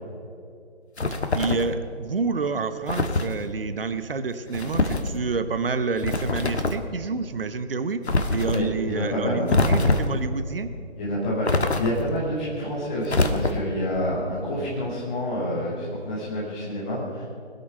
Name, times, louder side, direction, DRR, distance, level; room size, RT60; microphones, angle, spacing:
sound 1, 1.0-1.7 2.9-3.3 4.5-5.1 6.0-6.9 8.1-8.6 9.5-10.2 11.5-12.2 13.1-13.8, left 2 dB, 70° left, 1.5 m, -24 dB
voice 1, 1.1-8.0 8.3-10.7, right 4 dB, 55° right, 11 dB, 0.9 m, -28 dB
voice 2, 8.5-9.5 11.0-17.2, left 1 dB, 5° left, -8 dB, 0.9 m, -28 dB
21.5 x 8.5 x 5.5 m, 2.5 s
figure-of-eight pair, 160°, 34 cm